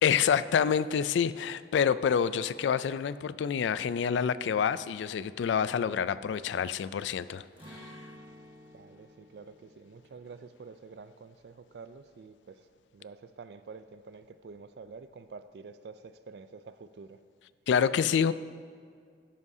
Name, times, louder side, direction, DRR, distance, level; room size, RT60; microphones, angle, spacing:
voice 1, 0.0-8.0 17.7-18.3, left 7 dB, 90° left, 16 dB, 0.3 m, -27 dB
Acoustic guitar, 7.6-13.5 13.8-14.0 14.4-14.9, equal, 30° right, 1.5 m, -55 dB
voice 2, 8.7-17.2, right 4 dB, 70° right, 12 dB, 0.4 m, -48 dB
12.5 x 11.0 x 2.7 m, 2.1 s
head